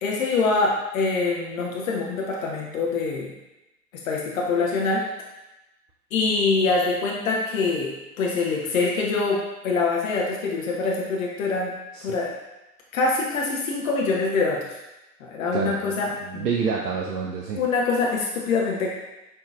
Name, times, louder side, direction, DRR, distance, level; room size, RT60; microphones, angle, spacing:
voice 1, 0.0-3.3 4.0-5.1 6.1-11.7 12.0-12.3 12.9-14.6 15.2-16.5 17.6-18.9, left 3 dB, 60° left, -2 dB, 0.8 m, -24 dB
voice 2, 15.5-17.6, right 5 dB, 75° right, -1 dB, 0.6 m, -28 dB
5.4 x 2.8 x 2.4 m, 0.98 s
figure-of-eight pair, 100°, 47 cm